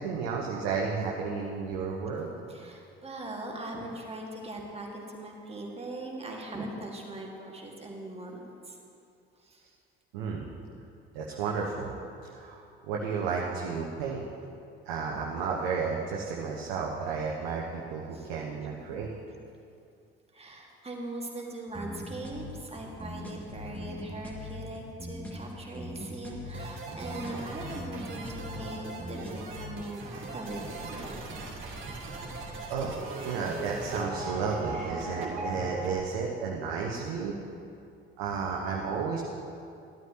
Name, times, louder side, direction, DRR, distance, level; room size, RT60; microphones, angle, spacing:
voice 1, 0.0-2.3 10.1-10.5 11.1-12.0 12.3-14.3 14.8-19.1 32.7-37.3 38.2-39.2, right 5 dB, 65° right, -2 dB, 1.0 m, -32 dB
voice 2, 2.5-8.8 9.4-9.6 18.1-18.3 18.8-19.0 20.3-31.0, right 1 dB, 20° right, 0 dB, 1.9 m, -40 dB
sound 1, 21.7-29.7, left 1 dB, 5° left, 2.4 m, -41 dB
sound 2, 26.5-36.0, right 2 dB, 40° right, 2.5 m, -39 dB
14.5 x 12.5 x 2.9 m, 2.5 s
figure-of-eight pair, 50°, 30 cm